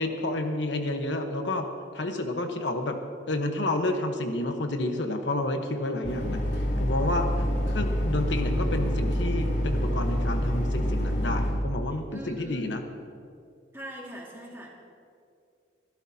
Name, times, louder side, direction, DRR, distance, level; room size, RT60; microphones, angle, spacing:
voice 1, 0.0-1.7 1.9-3.0 3.3-6.4 6.8-7.3 7.7-12.8, left 2 dB, 85° left, 5 dB, 1.1 m, -30 dB
sound 1, 6.0-11.5, equal, 70° left, 3.1 m, -27 dB
voice 2, 12.1-12.7 13.7-14.7, right 1 dB, 15° right, -2 dB, 2.1 m, -41 dB
25.5 x 11.5 x 2.8 m, 2.4 s
head